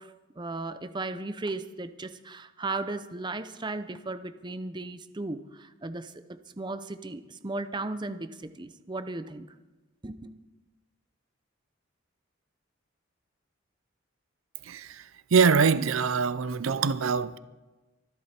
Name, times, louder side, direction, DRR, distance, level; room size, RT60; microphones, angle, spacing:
voice 1, 0.0-9.5 10.0-10.4, right 2 dB, 20° right, 0.6 m, -36 dB
voice 2, 14.6-15.0 15.3-17.4, right 5 dB, 80° right, 0.5 m, -24 dB
24.0 x 11.0 x 4.4 m
head